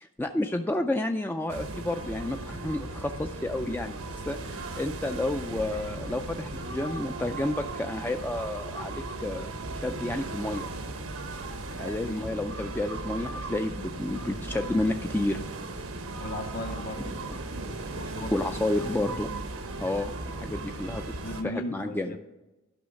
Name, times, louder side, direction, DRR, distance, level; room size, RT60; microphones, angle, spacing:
voice 1, 0.0-9.5 9.7-10.7 11.8-15.4 18.3-19.3 19.8-21.0 21.4-22.1, left 1 dB, 10° left, 5 dB, 0.3 m, -30 dB
sound 1, 1.5-21.4, right 2 dB, 90° right, 1.1 m, -37 dB
voice 2, 11.8-12.2 16.2-17.2 17.9-18.3 21.2-22.2, left 1 dB, 45° left, 6 dB, 1.0 m, -37 dB
12.0 x 5.5 x 5.2 m, 1.0 s
head